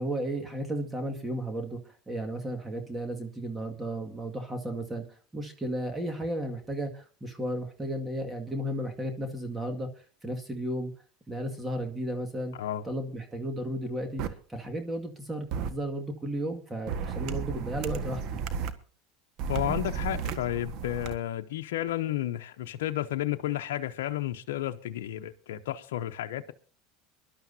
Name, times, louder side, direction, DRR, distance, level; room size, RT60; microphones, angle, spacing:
voice 1, 0.0-9.9 10.2-10.9 11.3-12.5 12.8-18.4, right 1 dB, 15° right, 4 dB, 2.0 m, -34 dB
voice 2, 12.5-12.8 19.5-26.5, left 13 dB, 85° left, 6 dB, 0.7 m, -32 dB
sound 1, 14.2-14.3 15.5-15.7 16.9-18.7 19.4-21.1, right 6 dB, 60° right, 1.5 m, -33 dB
23.5 x 12.0 x 2.8 m, 0.40 s
supercardioid pair, 105°, 0 cm